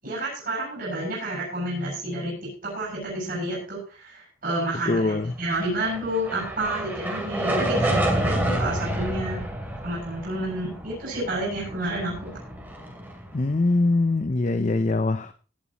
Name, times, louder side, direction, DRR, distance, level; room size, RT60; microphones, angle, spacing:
voice 1, 0.0-2.3 2.6-9.4 9.8-12.4, right 1 dB, 45° right, 6.9 m, -30 dB
voice 2, 4.9-5.3 13.3-15.3, left 2 dB, 35° left, 0.6 m, -23 dB
sound 1, 5.5-13.9, right 1 dB, 10° right, 2.8 m, -29 dB
17.0 x 11.5 x 3.0 m
head